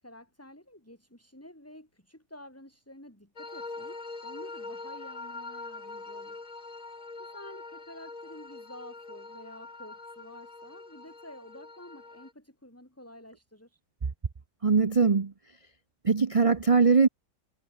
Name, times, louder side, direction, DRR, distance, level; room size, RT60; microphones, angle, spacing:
voice 1, 0.0-6.4 7.2-13.8, left 1 dB, 10° left, 5.5 m, -50 dB
sound 1, 3.4-12.3, left 3 dB, 55° left, 4.1 m, -43 dB
voice 2, 14.6-15.3 16.0-17.1, right 5 dB, 30° right, 0.6 m, -21 dB
omnidirectional pair, 1.8 m